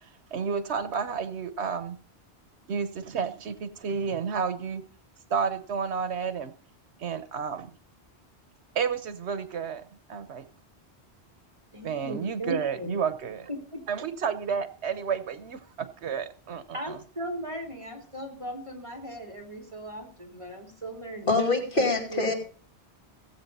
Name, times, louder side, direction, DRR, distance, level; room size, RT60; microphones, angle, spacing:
voice 1, 0.0-2.0 2.7-4.8 5.3-6.5 7.0-7.7 8.7-9.8 10.1-10.5 11.8-13.5 13.9-17.0, right 6 dB, 75° right, 12 dB, 1.1 m, -31 dB
voice 2, 11.7-12.9 13.7-13.8 16.7-21.4 21.8-22.3, right 1 dB, 25° right, 3 dB, 3.0 m, -37 dB
voice 3, 21.3-22.3, left 3 dB, 50° left, 1 dB, 3.0 m, -24 dB
16.5 x 8.0 x 5.4 m, 0.43 s
omnidirectional pair, 1.1 m